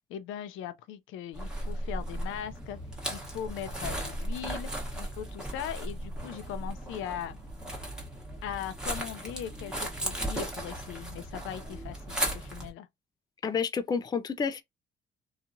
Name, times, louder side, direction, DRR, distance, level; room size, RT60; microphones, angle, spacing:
voice 1, 0.1-2.8 3.1-4.7 5.0-7.4 8.4-12.9, left 10 dB, 85° left, 0.4 m, -39 dB
sound 1, 1.3-12.7, right 1 dB, 5° right, 1.1 m, -36 dB
voice 2, 13.4-14.6, left 6 dB, 20° left, 0.3 m, -29 dB
2.8 x 2.3 x 2.6 m
cardioid pair, 90°, 20 cm